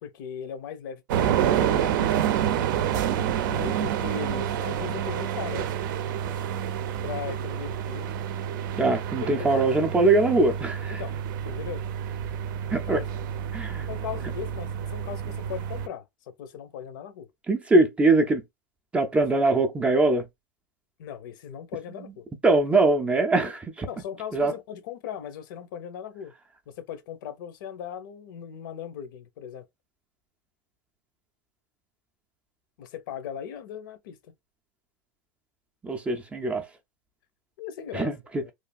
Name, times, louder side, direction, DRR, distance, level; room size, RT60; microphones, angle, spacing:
voice 1, 0.0-2.3 3.4-5.7 7.0-8.2 9.2-9.7 10.9-11.2 11.4-11.8 12.7-13.1 13.9-16.0 16.4-17.3 21.0-22.3 23.9-26.3 26.7-29.6 32.8-34.2 37.6-38.1 38.4-38.5, left 8 dB, 65° left, 0.7 m, -38 dB
sound 1, 1.1-15.9, right 9 dB, 65° right, 0.5 m, -28 dB
voice 2, 8.8-11.0 12.7-13.0 13.5-13.9 17.5-18.4 18.9-20.3 22.4-23.9 24.3-24.5 35.8-36.6 37.9-38.4, right 2 dB, 10° right, 0.4 m, -22 dB
3.2 x 2.4 x 2.3 m
supercardioid pair, 145°, 11 cm